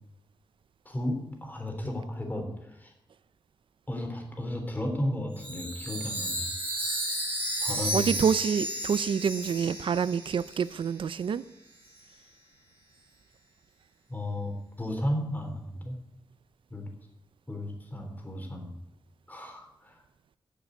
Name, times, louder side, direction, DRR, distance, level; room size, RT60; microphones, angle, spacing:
voice 1, 0.9-2.9 3.9-6.5 7.6-8.2 14.1-16.0 16.7-16.9 17.5-18.7 19.3-20.0, left 1 dB, 20° left, 3 dB, 3.4 m, -34 dB
Chime, 5.4-10.9, equal, 25° right, 4.5 m, -33 dB
voice 2, 7.9-11.4, right 7 dB, 90° right, 17 dB, 0.5 m, -27 dB
15.0 x 6.9 x 8.0 m, 0.86 s
wide cardioid pair, 120°, 8 cm